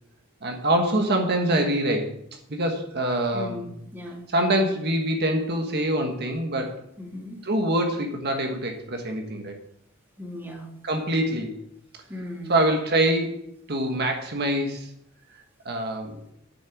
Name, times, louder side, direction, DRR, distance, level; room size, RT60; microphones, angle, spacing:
voice 1, 0.4-2.2 2.5-3.7 4.3-6.8 7.4-9.6 10.8-11.7 12.5-14.9 15.6-16.2, right 1 dB, 50° right, 4 dB, 1.5 m, -25 dB
voice 2, 3.3-4.3 7.0-7.4 10.2-10.7 12.1-12.6, left 1 dB, 10° right, 0 dB, 2.1 m, -37 dB
8.7 x 6.5 x 7.2 m, 0.73 s
head